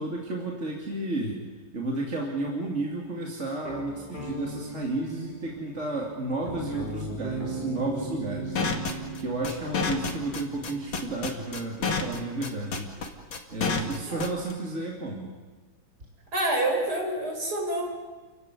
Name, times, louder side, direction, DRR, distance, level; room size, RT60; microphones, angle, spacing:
voice 1, 0.0-1.4 1.7-12.9 13.5-15.3, right 2 dB, 35° right, -1 dB, 2.9 m, -32 dB
sound 1, 3.6-11.1, left 1 dB, 25° left, 2.3 m, -40 dB
Bass guitar, 7.2-11.3, right 11 dB, 75° right, 2.4 m, -39 dB
sound 2, 8.6-14.5, left 5 dB, 85° left, 2.9 m, -28 dB
voice 2, 16.3-17.9, right 1 dB, 55° right, -1 dB, 6.0 m, -27 dB
29.0 x 15.5 x 9.9 m, 1.4 s
omnidirectional pair, 2.1 m